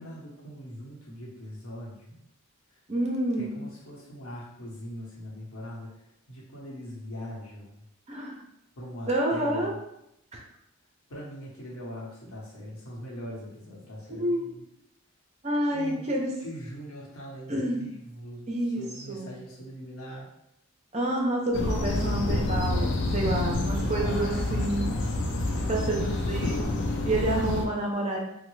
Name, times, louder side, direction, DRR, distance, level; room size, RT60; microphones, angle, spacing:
voice 1, 0.0-2.2 3.4-5.9 6.3-7.8 8.8-9.8 11.1-14.6 15.7-20.3 23.0-24.7 25.5-26.7 27.2-27.8, equal, 75° left, -4 dB, 0.9 m, -41 dB
voice 2, 2.9-3.5 8.1-8.4 9.1-9.7 10.3-10.4 14.2-14.5 15.4-16.3 17.5-17.8 18.5-19.3 20.9-25.0 25.7-28.2, right 1 dB, 30° right, 0 dB, 0.5 m, -29 dB
sound 1, 21.5-27.6, left 2 dB, 55° left, 0.4 m, -28 dB
3.1 x 2.1 x 3.1 m, 0.80 s
head